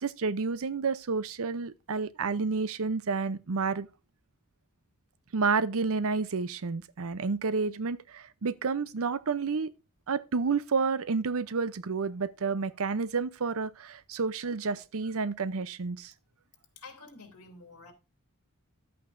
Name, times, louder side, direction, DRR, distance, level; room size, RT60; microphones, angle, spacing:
voice 1, 0.0-3.9 5.3-9.7 10.1-16.1, right 4 dB, 65° right, 0.6 m, -30 dB
voice 2, 16.8-17.9, left 3 dB, 85° left, 2.7 m, -49 dB
11.5 x 8.5 x 2.6 m
head